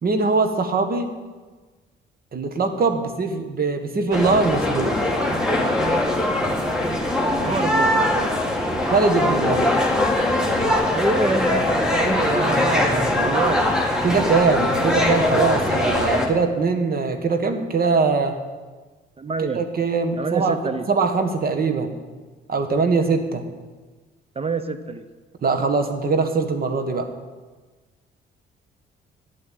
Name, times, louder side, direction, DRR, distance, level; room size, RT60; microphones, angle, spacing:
voice 1, 0.0-1.1 2.3-5.0 8.9-9.7 14.0-18.4 19.5-20.5 20.9-22.0 22.5-23.5 25.4-27.1, right 4 dB, 50° right, 8 dB, 1.8 m, -22 dB
sound 1, 4.1-16.3, left 1 dB, 5° right, 2.3 m, -21 dB
voice 2, 7.4-8.3 10.9-13.7 14.0-14.3 19.2-19.6 20.2-20.9 24.3-25.0, right 4 dB, 30° right, 11 dB, 0.9 m, -26 dB
11.0 x 8.5 x 9.5 m, 1.3 s
cardioid pair, 90°, 20 cm